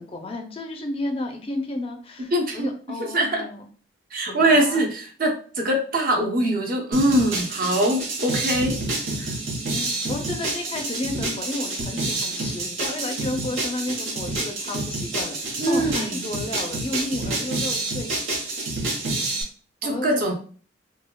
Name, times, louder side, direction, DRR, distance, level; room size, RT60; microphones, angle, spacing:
voice 1, 0.0-3.6 4.3-4.8 9.7-18.5 19.8-20.3, left 2 dB, 30° left, 3 dB, 0.4 m, -32 dB
voice 2, 2.3-2.7 3.1-3.4 4.1-8.8 9.2-9.3 15.6-16.3 19.8-20.3, right 1 dB, 50° right, 1 dB, 0.7 m, -22 dB
sound 1, 6.9-19.4, right 2 dB, 85° right, 1.0 m, -28 dB
4.1 x 2.2 x 2.2 m, 0.42 s
head